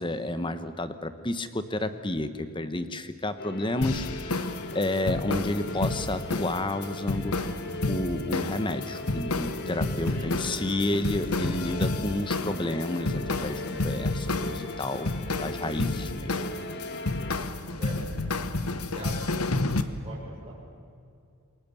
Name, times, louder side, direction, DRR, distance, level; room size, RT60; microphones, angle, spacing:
voice 1, 0.0-7.4 7.9-15.1 15.4-16.4, left 1 dB, 20° left, 11 dB, 1.1 m, -31 dB
sound 1, 3.4-17.4, left 2 dB, 50° left, 1.8 m, -39 dB
sound 2, 3.8-19.8, left 2 dB, 80° left, 1.3 m, -31 dB
voice 2, 10.0-10.4 17.8-18.0 18.8-19.6 20.0-20.5, right 2 dB, 25° right, -5 dB, 6.6 m, -42 dB
28.5 x 22.0 x 7.1 m, 2.4 s
head